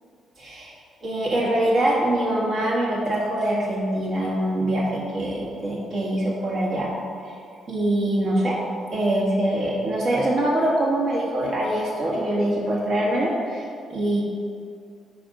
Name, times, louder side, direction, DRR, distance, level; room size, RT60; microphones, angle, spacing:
voice 1, 0.4-0.7 1.0-6.9 7.7-8.6 8.9-14.2, right 1 dB, 60° right, -4 dB, 1.5 m, -24 dB
5.1 x 4.3 x 5.1 m, 2.4 s
cardioid pair, 90°, 0 cm